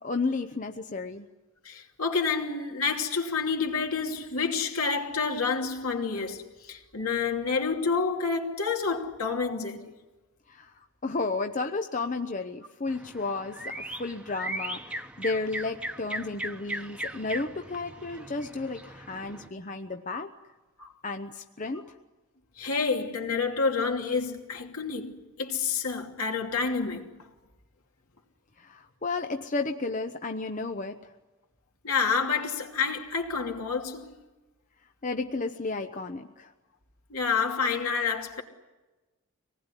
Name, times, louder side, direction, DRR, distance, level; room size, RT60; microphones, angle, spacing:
voice 1, 0.0-1.3 10.5-10.7 11.0-13.7 14.0-20.3 21.0-21.9 28.6-31.0 35.0-36.5, left 3 dB, 35° left, 0.8 m, -32 dB
voice 2, 1.6-9.9 20.8-20.9 22.6-27.1 31.8-34.1 37.1-38.4, left 5 dB, 75° left, 2.8 m, -29 dB
sound 1, 12.9-19.5, right 1 dB, 5° right, 1.1 m, -38 dB
25.5 x 19.0 x 9.9 m
head